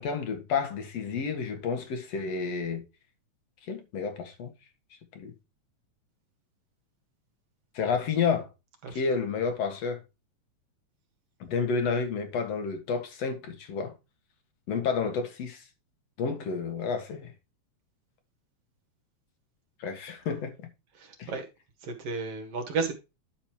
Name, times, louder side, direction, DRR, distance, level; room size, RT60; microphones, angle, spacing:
voice 1, 0.0-2.8 3.7-4.5 5.2-5.3 7.7-8.5 8.9-10.0 11.4-13.9 14.7-15.6 16.2-17.3 19.8-20.5 21.2-21.3, left 5 dB, 60° left, 2.8 m, -30 dB
voice 2, 8.8-9.1 21.0-21.4 21.8-22.9, right 4 dB, 60° right, 2.5 m, -33 dB
10.5 x 6.7 x 3.1 m
omnidirectional pair, 3.4 m